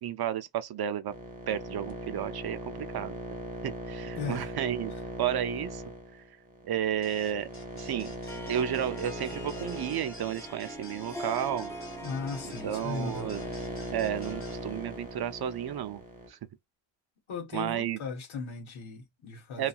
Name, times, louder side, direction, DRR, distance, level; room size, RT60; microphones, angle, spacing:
voice 1, 0.0-1.1 1.5-3.2 3.6-4.9 5.2-5.8 6.6-7.5 7.7-8.1 8.5-11.7 12.6-13.4 13.9-16.0 16.3-16.4 17.5-18.0 19.6-19.7, right 10 dB, 55° right, 0.5 m, -32 dB
sound 1, 1.1-16.3, right 1 dB, 20° right, 0.9 m, -40 dB
voice 2, 4.1-4.5 12.0-13.5 17.3-19.7, left 5 dB, 90° left, 0.9 m, -37 dB
sound 2, 7.0-14.6, left 1 dB, 30° left, 0.8 m, -51 dB
Harp, 8.2-16.0, equal, 5° left, 0.5 m, -44 dB
2.7 x 2.3 x 2.3 m
wide cardioid pair, 120°, 47 cm